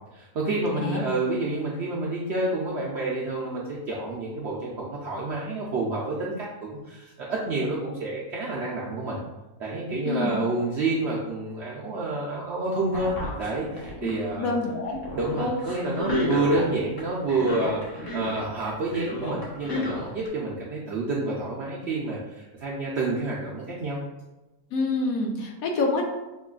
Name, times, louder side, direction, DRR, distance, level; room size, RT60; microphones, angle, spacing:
voice 1, 0.1-9.2 9.6-14.5 15.1-24.0, right 2 dB, 70° right, -4 dB, 0.6 m, -29 dB
sound 1, 12.9-14.3 14.6-16.7 17.0-18.7 18.9-20.3, left 1 dB, 45° left, 0.9 m, -30 dB
voice 2, 14.4-15.0 24.7-26.0, left 3 dB, 70° left, 1 dB, 1.0 m, -27 dB
5.6 x 2.2 x 2.3 m, 1.0 s
omnidirectional pair, 1.6 m